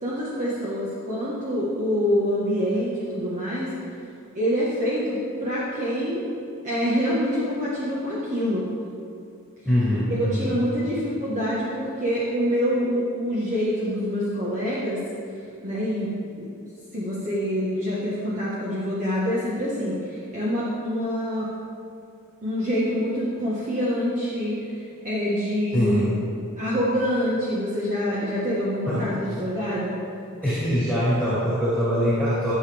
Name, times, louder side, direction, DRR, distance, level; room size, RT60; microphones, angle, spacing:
voice 1, 0.0-3.7 4.3-6.3 6.6-8.7 10.1-15.0 15.6-16.1 16.4-16.5 16.9-21.5 22.4-26.0 26.6-30.0, equal, 35° right, -8 dB, 1.4 m, -26 dB
voice 2, 9.6-10.5 10.8-10.9 25.7-26.2 28.9-29.3 30.4-32.5, equal, 5° right, -13 dB, 2.5 m, -23 dB
13.5 x 7.1 x 3.5 m, 2.6 s
head